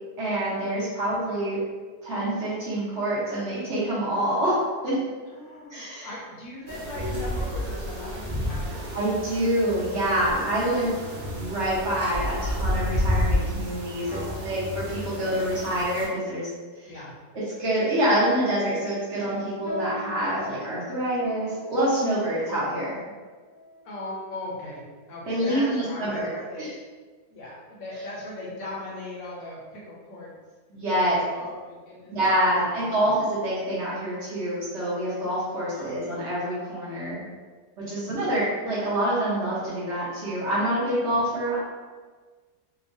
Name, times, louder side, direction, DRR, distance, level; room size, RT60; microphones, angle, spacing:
voice 1, 0.2-1.6 2.0-4.6 4.8-5.0 5.7-6.1 8.9-10.9 11.2-16.5 16.8-16.9 17.6-23.0 25.3-26.3 26.6-26.7 30.7-31.2 32.1-37.2 37.9-41.6, right 1 dB, 55° right, -9 dB, 0.9 m, -26 dB
voice 2, 5.3-9.0 10.7-11.3 14.1-14.8 15.2-15.4 16.8-17.2 23.8-26.7 27.3-30.4 31.0-33.0 35.7-36.0 37.9-38.4, left 1 dB, 70° left, -4 dB, 0.9 m, -39 dB
sound 1, 6.7-16.1, left 1 dB, 80° right, 0.5 m, -30 dB
sound 2, 19.6-25.3 26.0-26.1 26.8-27.1 27.5-27.7 28.4-28.5, equal, 5° right, 0.5 m, -42 dB
2.9 x 2.1 x 2.5 m, 1.4 s
omnidirectional pair, 1.7 m